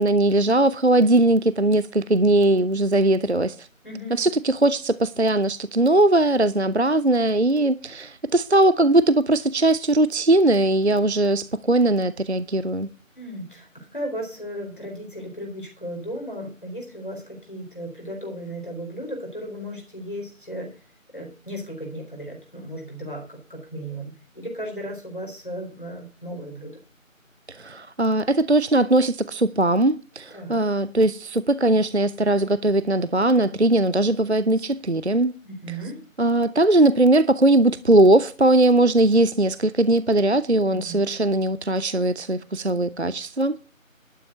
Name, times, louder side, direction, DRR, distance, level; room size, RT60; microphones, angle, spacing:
voice 1, 0.0-3.7 4.2-12.9 27.5-35.3 36.2-43.6, right 2 dB, 55° right, 0.4 m, -20 dB
voice 2, 3.8-4.2 13.1-20.8 21.1-26.8 30.3-30.7 35.4-36.0 40.6-41.1, equal, 40° left, 3.8 m, -35 dB
12.0 x 5.8 x 7.8 m
figure-of-eight pair, 180°, 41 cm